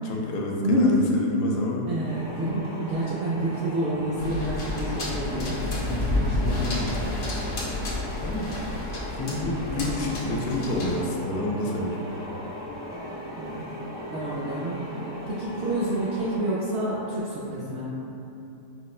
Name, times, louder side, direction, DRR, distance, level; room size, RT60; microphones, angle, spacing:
voice 1, 0.0-1.9 8.2-8.5 9.1-12.0, left 1 dB, 80° left, -2 dB, 1.1 m, -29 dB
voice 2, 0.6-1.0 1.9-5.6 5.8-7.1 13.4-13.8 14.1-14.9 15.3-17.9, equal, 80° right, -7 dB, 0.6 m, -28 dB
sound 1, 2.0-16.4, equal, 20° left, 0.7 m, -38 dB
sound 2, 4.2-11.0, left 2 dB, 50° left, 0.8 m, -30 dB
sound 3, 9.0-15.3, right 1 dB, 55° right, 0.9 m, -45 dB
5.0 x 2.1 x 2.3 m, 2.8 s
omnidirectional pair, 1.7 m